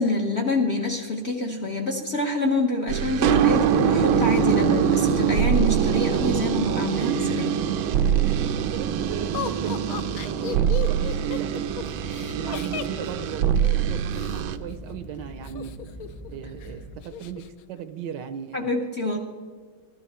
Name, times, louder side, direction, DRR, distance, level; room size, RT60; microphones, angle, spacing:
voice 1, 0.0-7.6 18.5-19.2, left 2 dB, 50° left, 2 dB, 0.8 m, -26 dB
sound 1, 2.9-14.6, right 8 dB, 90° right, 1.4 m, -23 dB
sound 2, 7.8-17.0, right 1 dB, ahead, 0.4 m, -42 dB
voice 2, 8.5-11.8 12.3-15.8 16.3-18.8, right 9 dB, 75° right, 11 dB, 1.1 m, -37 dB
Laughter, 9.3-14.4 15.4-16.3 16.6-16.7 17.0-17.5, left 9 dB, 85° left, 0.8 m, -35 dB
14.0 x 11.5 x 4.2 m, 1.5 s
omnidirectional pair, 2.1 m